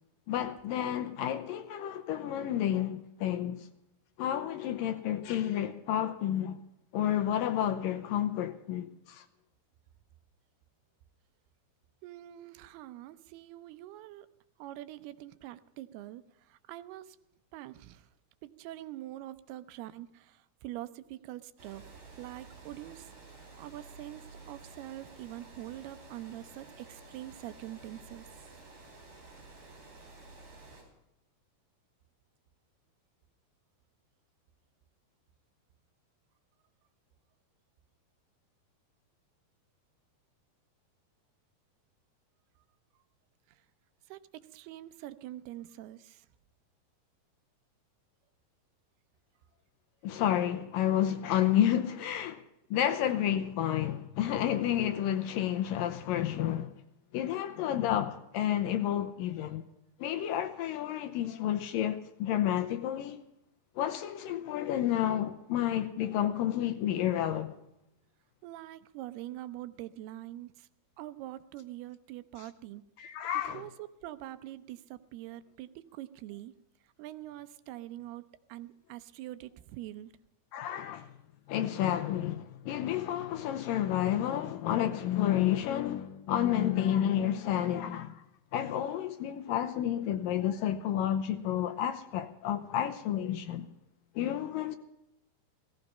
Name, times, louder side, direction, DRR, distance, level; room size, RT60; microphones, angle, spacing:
voice 1, 0.3-3.7 4.2-6.6 6.9-9.3 50.0-52.4 52.7-56.8 57.1-59.6 60.0-63.2 63.8-67.5 73.0-73.6 80.5-81.1 81.5-88.2 88.5-93.7 94.2-94.8, left 11 dB, 75° left, 2.1 m, -30 dB
voice 2, 12.0-14.3 14.6-17.2 17.5-18.1 18.4-21.9 22.1-23.1 23.6-28.3 43.5-43.6 44.1-46.3 52.9-53.3 68.4-70.7 71.0-73.2 73.5-76.5 77.0-78.2 78.5-80.1, right 14 dB, 80° right, 2.6 m, -44 dB
Water, 21.6-30.8, right 3 dB, 45° right, 6.0 m, -52 dB
17.0 x 15.0 x 5.5 m
omnidirectional pair, 4.7 m